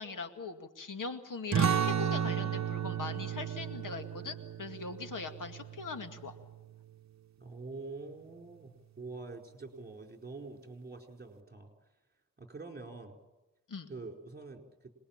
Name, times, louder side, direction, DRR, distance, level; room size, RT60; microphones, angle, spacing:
voice 1, 0.0-6.3 13.7-13.9, left 4 dB, 70° left, 6 dB, 2.3 m, -41 dB
sound 1, 1.5-6.7, right 8 dB, 55° right, 0.9 m, -33 dB
voice 2, 7.4-11.7 12.4-13.2 13.9-14.9, right 3 dB, 30° right, 3 dB, 4.4 m, -45 dB
26.5 x 20.5 x 8.9 m, 1.0 s
wide cardioid pair, 110°, 33 cm